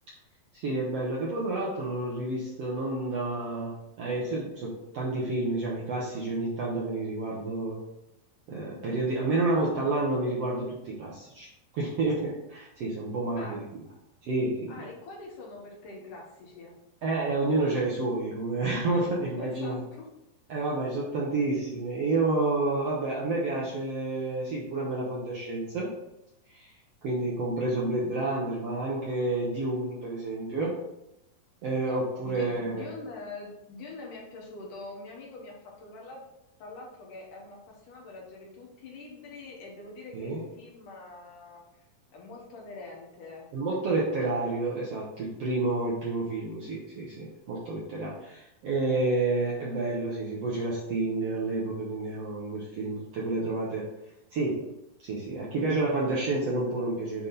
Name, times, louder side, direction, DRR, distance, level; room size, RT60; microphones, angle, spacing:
voice 1, 0.5-7.8 8.5-11.5 11.7-13.6 14.2-14.7 17.0-19.8 20.5-25.9 26.5-26.7 27.0-30.8 31.6-32.9 40.1-40.4 43.5-53.9 54.3-54.6 55.0-57.3, right 2 dB, 65° right, -5 dB, 1.5 m, -29 dB
voice 2, 14.7-16.8 19.4-20.1 32.2-36.2 36.6-41.6 42.1-43.5, left 3 dB, 70° left, -1 dB, 2.6 m, -44 dB
8.3 x 3.6 x 4.1 m, 0.85 s
omnidirectional pair, 4.1 m